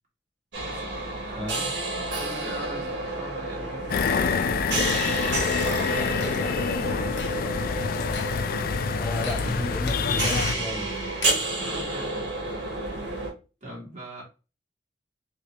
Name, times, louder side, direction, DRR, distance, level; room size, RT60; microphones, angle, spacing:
sound 1, 0.5-13.3, right 2 dB, 75° right, 1.2 m, -31 dB
voice 1, 0.6-7.4 11.6-12.2 13.6-14.2, right 1 dB, 45° right, 1.5 m, -41 dB
voice 2, 1.4-1.7 9.0-10.9, left 1 dB, 5° left, 1.0 m, -32 dB
sound 2, 3.9-10.5, left 5 dB, 55° left, 0.3 m, -27 dB
sound 3, 5.5-12.0, left 3 dB, 75° left, 0.8 m, -42 dB
3.0 x 2.8 x 3.0 m
head